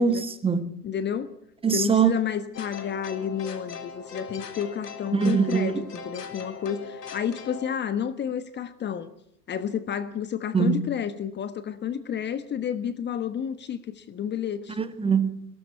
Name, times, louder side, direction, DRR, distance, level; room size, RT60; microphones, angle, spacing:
voice 1, 0.0-0.7 1.6-2.2 5.1-5.7 10.5-10.9 14.8-15.4, right 6 dB, 10° right, 1.6 m, -23 dB
voice 2, 0.8-1.3 1.7-9.1 9.5-14.8, left 8 dB, 20° left, 1.3 m, -31 dB
sound 1, 2.5-7.8, left 5 dB, 80° left, 3.7 m, -40 dB
23.0 x 18.0 x 9.6 m
hypercardioid pair, 105°, 47 cm